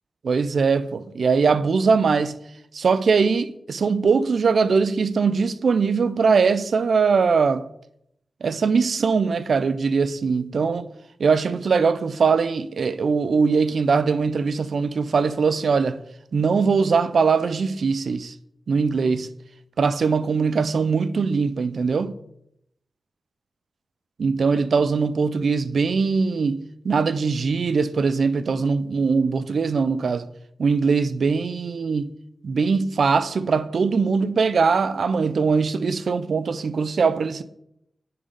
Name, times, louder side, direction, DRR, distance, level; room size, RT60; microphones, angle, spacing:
voice 1, 0.2-2.4 2.7-7.6 8.4-10.9 11.2-16.0 16.3-18.3 18.7-19.3 19.8-22.1 24.2-30.3 30.6-32.1 32.4-37.4, right 5 dB, 75° right, 0.5 m, -21 dB
10.0 x 3.9 x 5.1 m
cardioid pair, 65°, 0 cm